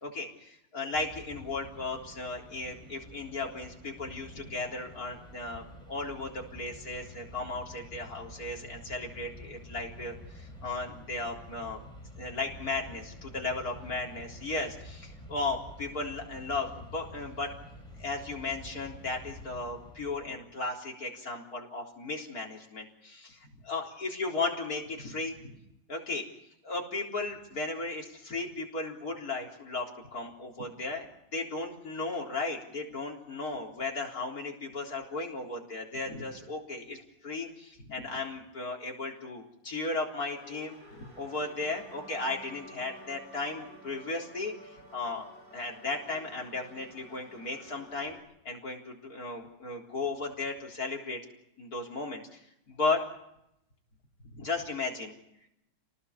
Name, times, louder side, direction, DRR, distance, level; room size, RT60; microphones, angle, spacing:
voice 1, 0.0-11.8 12.2-17.5 18.0-25.6 25.9-26.2 26.6-31.1 31.3-37.0 37.2-45.3 45.5-48.2 48.4-51.2 51.6-52.4 52.8-53.0 54.3-55.1, left 3 dB, 50° left, 0 dB, 4.4 m, -35 dB
Mechanisms, 0.9-20.4, left 1 dB, ahead, 7.5 m, -49 dB
sound 1, 40.3-48.2, equal, 55° right, 7.7 m, -52 dB
29.0 x 19.0 x 7.0 m, 0.81 s
omnidirectional pair, 2.0 m